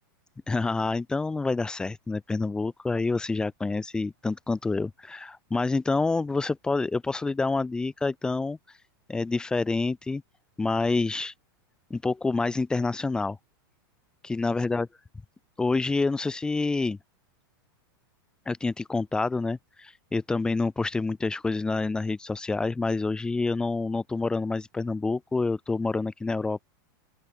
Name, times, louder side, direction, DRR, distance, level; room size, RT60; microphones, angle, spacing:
voice 1, 0.5-8.8 9.1-10.2 10.6-11.3 11.9-13.4 14.2-14.9 15.6-17.0 18.5-26.6, left 3 dB, 5° left, 2.3 m, -27 dB
open air
supercardioid pair, 170°, 12 cm